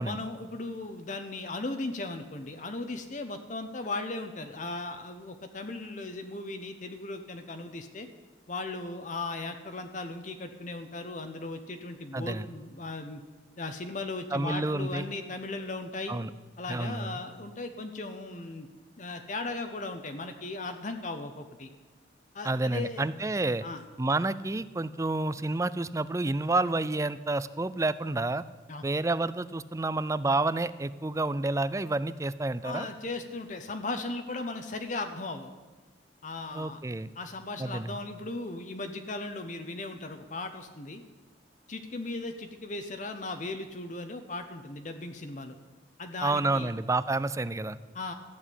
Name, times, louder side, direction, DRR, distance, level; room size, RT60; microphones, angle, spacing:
voice 1, 0.0-8.1 8.5-13.2 13.6-16.1 16.6-18.7 19.0-21.7 22.3-23.1 23.6-23.8 28.7-28.8 32.6-35.5 36.2-36.8 37.2-41.0 41.7-45.6 46.0-46.7 47.9-48.1, left 2 dB, 45° left, 6 dB, 0.9 m, -37 dB
voice 2, 12.1-12.5 14.3-15.0 16.1-16.3 16.7-17.2 22.4-23.6 24.0-28.4 28.8-32.9 36.5-37.1 37.6-38.0 46.2-47.8, right 2 dB, 15° right, 16 dB, 0.4 m, -29 dB
14.0 x 7.3 x 9.9 m, 1.3 s
head